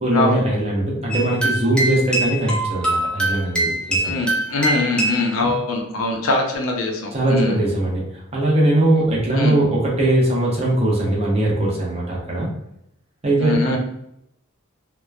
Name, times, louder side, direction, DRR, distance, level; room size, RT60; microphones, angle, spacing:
voice 1, 0.0-4.1 5.4-5.5 7.1-12.5 13.2-13.8, right 1 dB, 30° right, -4 dB, 0.7 m, -20 dB
sound 1, 1.1-5.3, right 1 dB, 5° left, 0.4 m, -23 dB
voice 2, 4.0-7.6 9.3-9.5 13.4-13.8, left 2 dB, 75° left, 2 dB, 0.5 m, -22 dB
2.9 x 2.1 x 2.3 m, 0.78 s
head